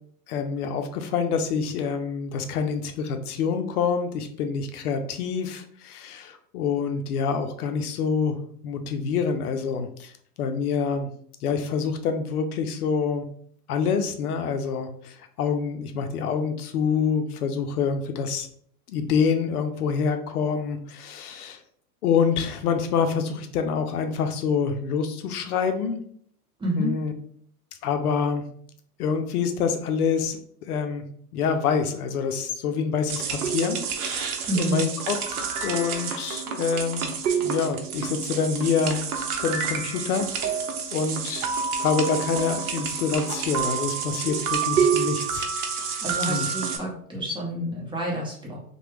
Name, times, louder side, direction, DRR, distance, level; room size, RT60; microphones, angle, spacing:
voice 1, 0.3-8.4 8.6-10.1 10.4-11.1 11.4-13.3 13.7-18.5 18.9-21.6 22.0-26.0 26.8-27.1 27.8-28.5 29.0-31.0 31.3-37.1 37.4-39.0 39.4-40.6 40.9-41.5 41.8-45.5 46.2-46.5, left 6 dB, 70° left, 6 dB, 0.6 m, -26 dB
voice 2, 26.6-26.9 34.5-34.8 45.8-48.6, right 1 dB, 10° right, -3 dB, 0.7 m, -29 dB
sound 1, 33.1-46.8, right 6 dB, 65° right, 0.7 m, -28 dB
2.9 x 2.2 x 3.2 m, 0.62 s
hypercardioid pair, 105°, 47 cm